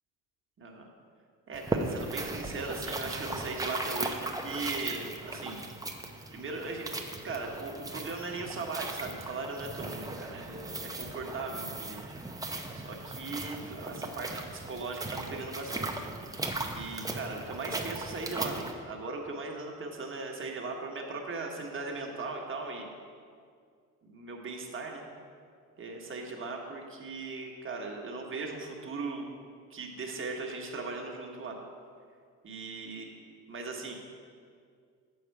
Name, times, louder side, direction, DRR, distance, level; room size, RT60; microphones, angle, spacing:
voice 1, 0.6-0.9 1.5-5.7 6.3-6.9 7.2-12.1 12.7-15.9 16.7-22.9 24.0-25.0 25.8-29.4 29.7-31.6 32.4-33.1 33.5-34.0, right 3 dB, 35° right, 1 dB, 1.4 m, -38 dB
sound 1, 1.5-18.7, right 2 dB, 10° right, 0.7 m, -37 dB
7.1 x 6.6 x 4.7 m, 2.1 s
supercardioid pair, 80°, 35 cm